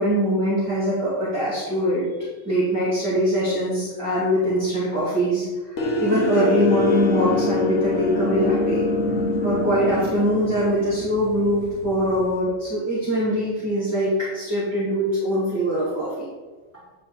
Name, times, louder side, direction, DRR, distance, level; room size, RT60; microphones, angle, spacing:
voice 1, 0.0-2.1 2.5-8.9 9.4-16.3, equal, 10° right, -10 dB, 2.1 m, -22 dB
sound 1, 5.8-12.4, left 2 dB, 70° left, 1.2 m, -25 dB
9.7 x 4.0 x 4.4 m, 1.3 s
omnidirectional pair, 1.4 m